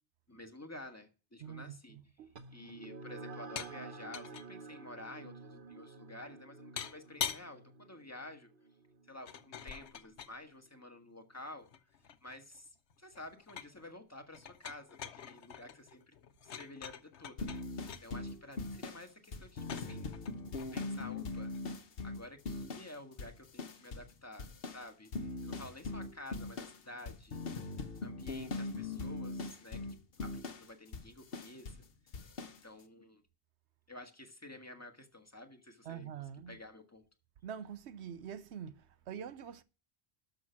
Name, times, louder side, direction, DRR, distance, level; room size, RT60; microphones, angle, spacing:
voice 1, 0.3-2.0 2.5-8.5 9.1-11.7 12.2-16.1 16.4-17.6 18.0-20.2 20.7-21.6 22.0-27.5 28.0-29.8 30.2-31.8 32.2-32.3 32.6-33.2 33.9-36.1 36.5-37.0, left 1 dB, 15° left, 1.7 m, -51 dB
voice 2, 1.4-2.3 35.9-36.6 37.4-39.6, right 8 dB, 80° right, 1.0 m, -45 dB
sound 1, 2.4-11.2, right 3 dB, 55° right, 1.1 m, -51 dB
sound 2, 3.6-3.8 4.1-4.5 6.8-7.5 9.3-10.4 11.4-12.6 12.9-13.8 14.3-18.0 19.6-21.6, left 8 dB, 85° left, 1.1 m, -44 dB
sound 3, 17.4-22.9 23.2-24.1 24.4-31.9 32.1-32.6, left 3 dB, 60° left, 1.2 m, -41 dB
12.5 x 6.4 x 5.8 m
omnidirectional pair, 1.1 m